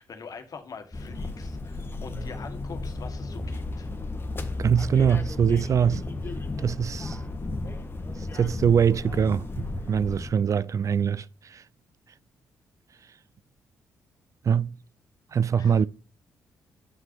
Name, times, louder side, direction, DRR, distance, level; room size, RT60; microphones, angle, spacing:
voice 1, 0.0-3.9 15.6-15.8, left 5 dB, 55° left, 1.6 m, -44 dB
sound 1, 0.9-10.3, left 2 dB, 30° left, 1.5 m, -34 dB
voice 2, 4.6-6.0 6.6-7.2 8.2-11.6 14.4-14.7 15.3-15.9, right 7 dB, 45° right, 0.3 m, -23 dB
9.3 x 5.9 x 2.8 m
hypercardioid pair, 50°, 8 cm